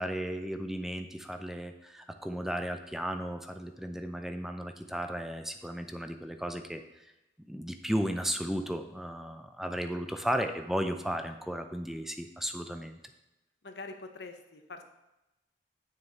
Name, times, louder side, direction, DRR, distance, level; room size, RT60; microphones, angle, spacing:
voice 1, 0.0-6.8 7.5-13.0, equal, ahead, 6 dB, 0.5 m, -34 dB
voice 2, 13.6-14.8, left 3 dB, 70° left, 6 dB, 1.0 m, -44 dB
9.2 x 6.6 x 4.2 m, 0.97 s
head